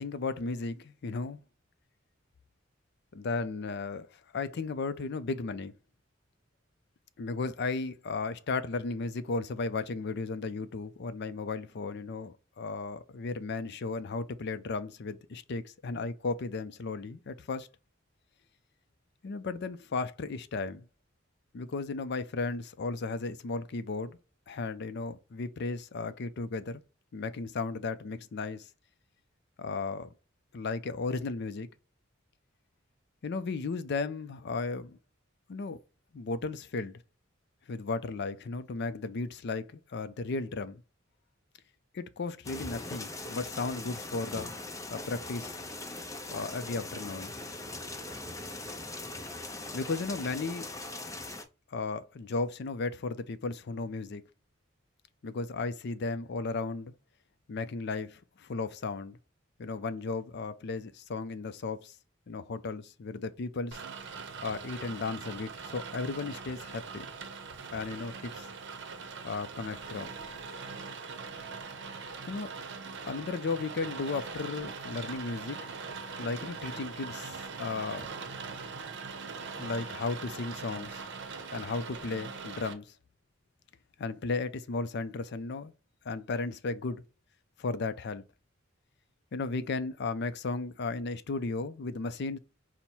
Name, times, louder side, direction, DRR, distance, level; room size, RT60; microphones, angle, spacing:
voice 1, 0.0-1.4 3.1-4.1 4.3-5.7 7.2-17.7 19.2-20.9 21.5-24.2 24.5-26.8 27.1-28.7 29.6-30.1 30.5-31.7 33.2-35.0 35.5-35.8 36.1-37.0 37.7-40.8 41.9-44.5 44.9-45.5 46.3-47.3 49.7-50.7 51.7-54.2 55.2-56.9 57.5-59.2 59.6-61.9 62.3-63.8 64.4-67.1 67.7-68.5 69.2-70.1 72.3-72.5 73.1-75.6 76.2-78.1 79.5-81.0 81.5-82.9 84.0-85.7 86.0-87.0 87.6-88.2 89.3-92.4, left 3 dB, 60° left, 0.5 m, -35 dB
sound 1, 42.4-51.4, left 2 dB, 15° left, 0.6 m, -41 dB
Rain, 63.7-82.7, right 5 dB, 60° right, 0.7 m, -42 dB
5.4 x 2.1 x 4.4 m
head